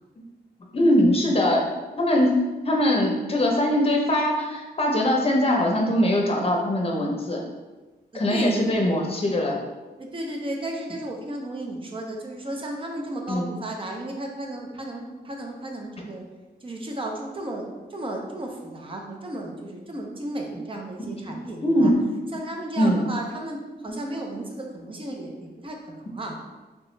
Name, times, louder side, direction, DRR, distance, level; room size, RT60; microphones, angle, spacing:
voice 1, 0.7-1.6 2.0-2.4 2.6-7.4 8.1-9.6 13.3-13.5 21.0-21.1 21.6-22.0 22.8-23.0, left 1 dB, 35° left, 0 dB, 0.7 m, -21 dB
voice 2, 8.1-8.6 10.0-16.2 16.6-21.9 22.3-26.4, right 1 dB, 30° right, 1 dB, 0.6 m, -34 dB
3.2 x 2.9 x 3.1 m, 1.2 s
wide cardioid pair, 100°, 17 cm